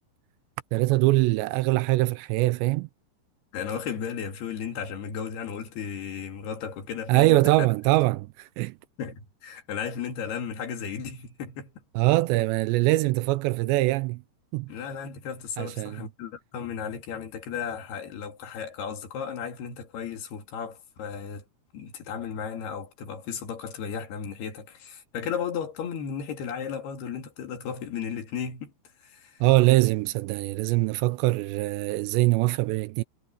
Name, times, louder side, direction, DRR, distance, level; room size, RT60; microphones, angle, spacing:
voice 1, 0.7-2.9 7.1-8.8 12.0-14.2 14.5-14.7 15.6-16.1 29.4-33.0, right 19 dB, 85° right, 2.7 m, -23 dB
voice 2, 3.5-7.7 9.0-11.7 14.7-21.5 21.7-28.7 29.0-29.4, left 7 dB, 65° left, 4.4 m, -35 dB
omnidirectional pair, 5.3 m